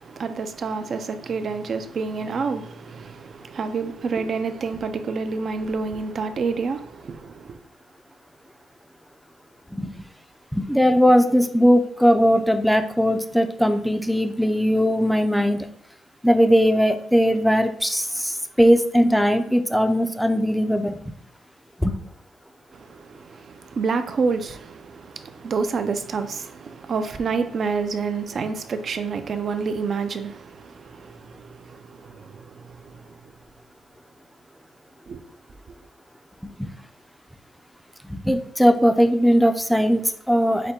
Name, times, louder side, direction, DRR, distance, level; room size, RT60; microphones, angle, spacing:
voice 1, 0.0-7.6 22.7-33.3 35.1-35.2, right 4 dB, 50° right, 0.5 m, -28 dB
voice 2, 10.5-15.7 16.2-21.0 21.8-22.0 36.4-36.7 38.0-40.7, equal, ahead, 0.5 m, -19 dB
5.0 x 2.2 x 4.2 m
cardioid pair, 90°, 0 cm